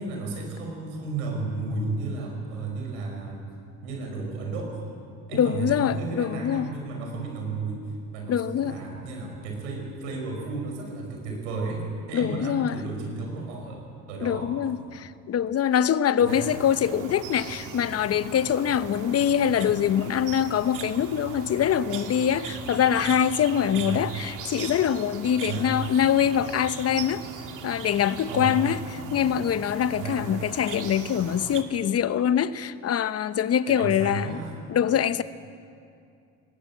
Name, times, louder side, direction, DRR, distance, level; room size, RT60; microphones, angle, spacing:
voice 1, 0.0-3.5 3.8-4.8 5.3-7.8 8.1-14.5 16.2-16.5 23.8-24.1 25.4-26.1 28.3-28.7 29.9-30.3 33.7-34.5, right 3 dB, 85° right, 5.7 m, -33 dB
voice 2, 5.3-6.7 8.3-8.8 12.1-12.8 14.2-27.2 27.6-28.8 29.1-34.4 34.7-35.2, left 9 dB, 45° left, 0.9 m, -24 dB
sound 1, 16.3-31.6, right 5 dB, 60° right, 2.3 m, -39 dB
20.0 x 18.5 x 8.5 m
supercardioid pair, 70°, 34 cm